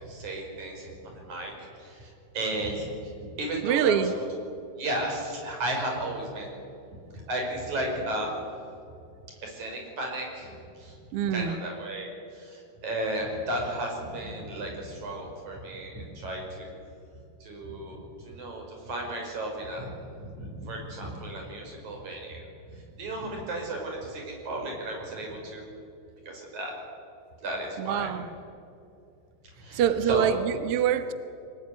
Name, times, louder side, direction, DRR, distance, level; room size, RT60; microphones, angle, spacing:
voice 1, 0.0-4.0 4.8-6.5 7.1-8.3 9.4-11.0 11.3-16.7 17.4-19.9 20.2-20.3 20.6-25.7 26.3-26.7 27.4-28.1 29.6-30.3, right 1 dB, 50° right, 1 dB, 6.6 m, -34 dB
voice 2, 3.6-4.2 11.1-11.6 27.8-28.3 29.7-31.1, right 9 dB, 85° right, 11 dB, 1.2 m, -25 dB
24.5 x 20.0 x 9.7 m, 2.6 s
omnidirectional pair, 4.3 m